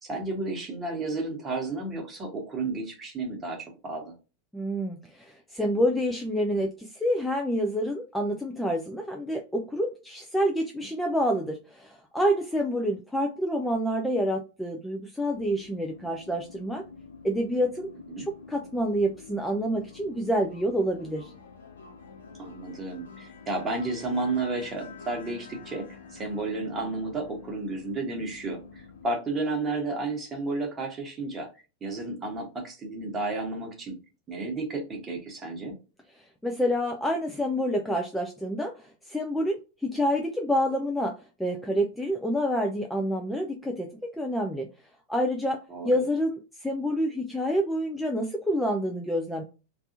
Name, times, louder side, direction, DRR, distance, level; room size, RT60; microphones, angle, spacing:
voice 1, 0.0-4.1 18.1-18.3 22.4-31.5 31.8-34.0 34.3-35.7 45.7-46.0, right 3 dB, 20° right, 1 dB, 1.2 m, -32 dB
voice 2, 4.5-16.8 17.2-17.9 18.2-21.3 36.4-39.6 39.8-44.7 45.1-49.4, equal, 5° left, 1 dB, 0.4 m, -28 dB
sound 1, 15.3-29.0, left 5 dB, 65° left, 0.7 m, -47 dB
3.3 x 2.5 x 2.7 m, 0.31 s
figure-of-eight pair, 90°, 0 cm